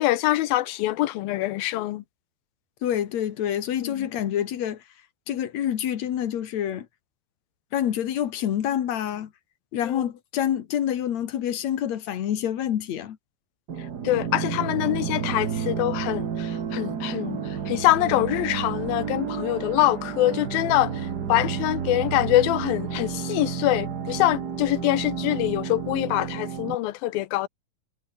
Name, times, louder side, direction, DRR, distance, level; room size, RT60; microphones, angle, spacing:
voice 1, 0.0-2.0 3.8-4.1 9.8-10.1 14.0-27.5, left 16 dB, 85° left, 2.7 m, -24 dB
voice 2, 2.8-4.8 5.3-6.9 7.7-9.3 9.7-13.2, left 10 dB, 60° left, 2.4 m, -27 dB
sound 1, 13.7-26.8, right 7 dB, 55° right, 1.1 m, -31 dB
omnidirectional pair, 4.2 m